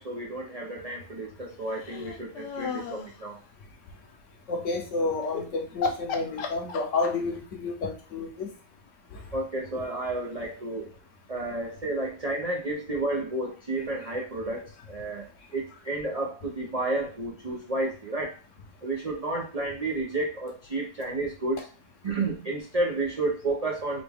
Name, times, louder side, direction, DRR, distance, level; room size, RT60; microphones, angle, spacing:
voice 1, 0.0-3.4 9.3-10.9 11.3-18.4 18.8-21.7 22.0-24.0, right 2 dB, 75° right, -2 dB, 0.3 m, -31 dB
sound 1, 1.7-3.2 5.2-5.4 5.8-7.4, left 5 dB, 80° left, 1.3 m, -33 dB
voice 2, 4.5-8.5 9.1-9.2, left 3 dB, 60° left, 2 dB, 0.9 m, -30 dB
4.1 x 2.3 x 3.4 m, 0.34 s
omnidirectional pair, 1.8 m